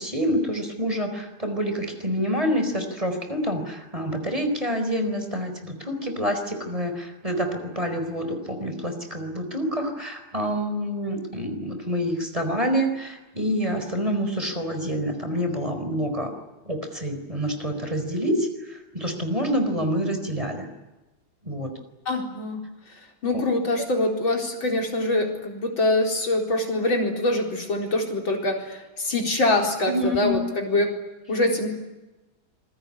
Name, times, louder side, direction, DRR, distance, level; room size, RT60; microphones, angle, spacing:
voice 1, 0.0-16.3 16.6-20.7 21.4-21.7 23.3-23.4 29.8-30.4, equal, 15° right, 6 dB, 4.6 m, -27 dB
voice 2, 22.1-22.6 23.2-30.9 31.3-31.7, left 2 dB, 70° left, 1 dB, 5.1 m, -24 dB
27.0 x 22.0 x 9.9 m, 1.1 s
omnidirectional pair, 2.2 m